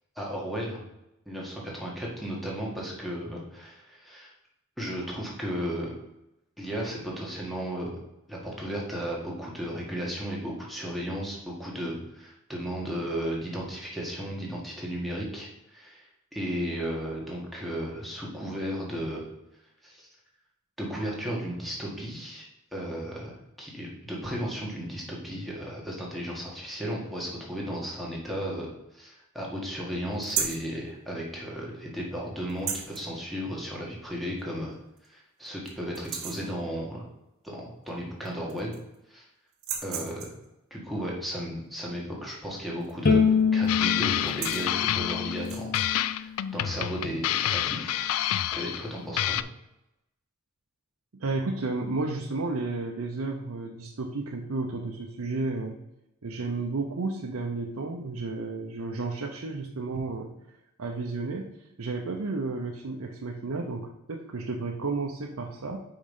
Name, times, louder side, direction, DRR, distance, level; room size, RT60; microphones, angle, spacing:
voice 1, 0.1-0.8 1.2-4.3 4.8-5.9 6.6-7.9 8.3-19.3 19.8-20.1 20.8-34.8 35.1-37.1 37.4-38.7 39.1-39.2 39.8-40.3 40.7-45.7 46.0-48.1 48.5-49.4, equal, ahead, -3 dB, 1.7 m, -35 dB
sound 1, 30.2-30.7 32.5-33.0 34.4-34.5 35.0-35.1 35.5-35.7 35.9-36.5 37.9-38.0 38.2-39.0 39.5-40.5 42.8-43.1 43.4-43.7 44.1-44.7 45.4-45.9, right 7 dB, 70° right, 1.3 m, -34 dB
Bowed string instrument, 43.1-46.3, left 5 dB, 45° left, 0.7 m, -26 dB
sound 2, 43.7-45.5 45.7-48.9 49.2-49.4, left 12 dB, 85° left, 0.3 m, -28 dB
voice 2, 51.2-55.8 56.2-60.3 60.8-61.5 61.8-65.8, right 3 dB, 85° right, 1 dB, 0.7 m, -32 dB
5.3 x 4.9 x 5.4 m, 0.89 s
head